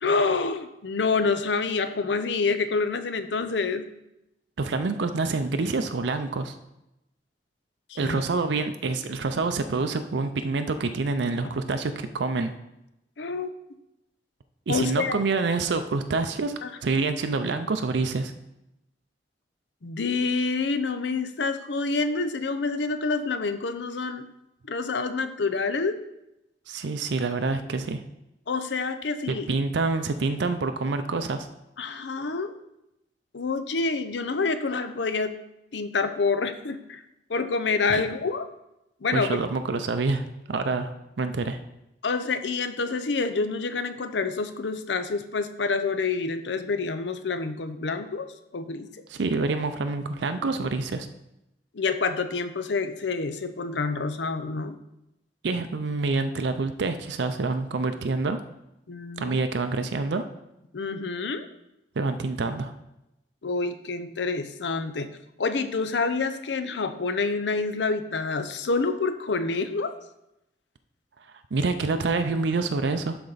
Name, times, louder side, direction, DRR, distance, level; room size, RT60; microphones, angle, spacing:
voice 1, 0.0-3.9 7.9-8.2 11.4-11.5 13.2-13.5 14.7-15.2 16.6-16.7 17.0-17.1 19.8-24.3 24.7-26.0 28.5-29.5 31.8-32.5 33.3-35.4 35.7-37.0 37.3-38.5 39.0-39.4 42.0-48.9 51.7-54.8 58.9-59.4 60.7-61.5 63.4-65.1 65.4-69.9, left 4 dB, 75° left, 10 dB, 0.6 m, -27 dB
voice 2, 4.6-6.5 8.0-12.5 14.7-16.5 16.8-18.3 26.7-28.0 29.3-31.5 37.9-38.0 39.1-41.6 49.1-51.1 55.4-58.4 59.2-60.2 62.0-62.7 71.5-73.2, right 3 dB, 75° right, 8 dB, 0.5 m, -27 dB
11.5 x 4.3 x 4.0 m, 0.88 s
head